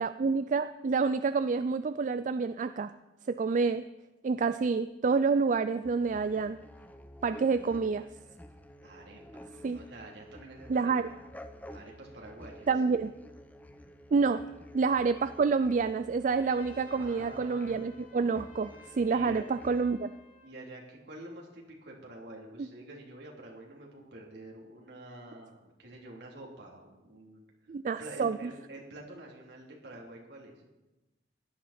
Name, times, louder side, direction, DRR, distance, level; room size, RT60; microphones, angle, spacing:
voice 1, 0.0-2.9 3.3-3.9 4.2-6.6 7.2-8.0 9.6-9.8 10.7-11.1 12.7-13.1 14.1-14.4 14.7-20.1 27.7-28.4, right 4 dB, 45° right, 12 dB, 0.3 m, -28 dB
sound 1, 5.8-19.9, equal, 10° left, 0.7 m, -50 dB
voice 2, 8.8-11.1 11.7-12.7 14.4-14.5 16.9-18.0 19.1-19.5 20.4-27.4 27.8-30.6, right 1 dB, 70° right, -2 dB, 3.2 m, -48 dB
Trumpet, 16.3-20.6, left 3 dB, 50° left, 5.4 m, -57 dB
16.5 x 11.5 x 4.3 m, 1.1 s
head